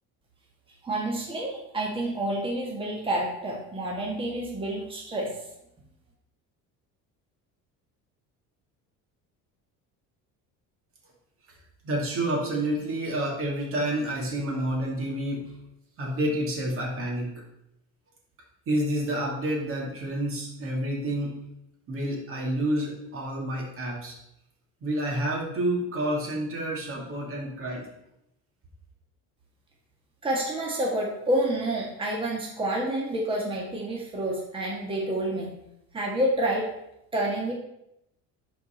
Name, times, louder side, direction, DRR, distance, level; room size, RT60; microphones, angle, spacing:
voice 1, 0.8-5.4 30.2-35.6 35.9-36.7 37.1-37.5, right 1 dB, 15° right, -2 dB, 1.6 m, -28 dB
voice 2, 11.8-15.5 16.0-17.3 18.7-21.4 21.9-24.1 24.8-27.9, right 1 dB, 40° right, -2 dB, 2.5 m, -29 dB
11.0 x 4.7 x 4.4 m, 0.82 s
cardioid pair, 150°, 32 cm